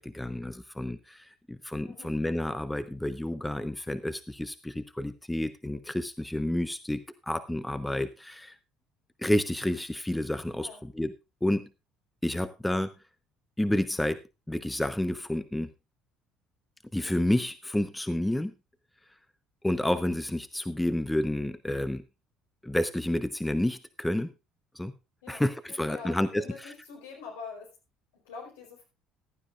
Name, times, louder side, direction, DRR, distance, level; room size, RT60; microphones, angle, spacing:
voice 1, 0.0-8.6 9.2-11.1 11.4-11.7 12.2-12.9 13.6-14.2 14.5-15.7 16.9-18.5 19.6-22.0 22.6-24.3 24.7-24.9 25.3-26.7, left 1 dB, 5° left, 12 dB, 0.9 m, -30 dB
voice 2, 25.2-27.7 28.1-28.8, left 5 dB, 70° left, 1 dB, 4.4 m, -45 dB
15.0 x 12.5 x 2.4 m, 0.25 s
figure-of-eight pair, 55°, 0 cm